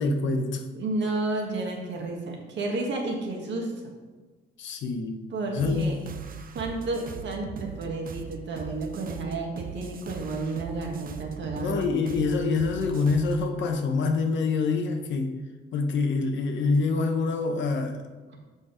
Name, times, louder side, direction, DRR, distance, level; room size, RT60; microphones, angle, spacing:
voice 1, 0.0-0.6 4.6-5.2 5.5-6.0 11.6-15.3 15.7-18.1, left 4 dB, 70° left, 4 dB, 0.9 m, -26 dB
voice 2, 0.7-3.9 5.3-6.0 6.5-11.8, right 2 dB, 65° right, 1 dB, 1.7 m, -31 dB
sound 1, 5.6-13.5, right 6 dB, 45° right, 0.6 m, -40 dB
6.5 x 5.3 x 5.0 m, 1.3 s
cardioid pair, 90°, 20 cm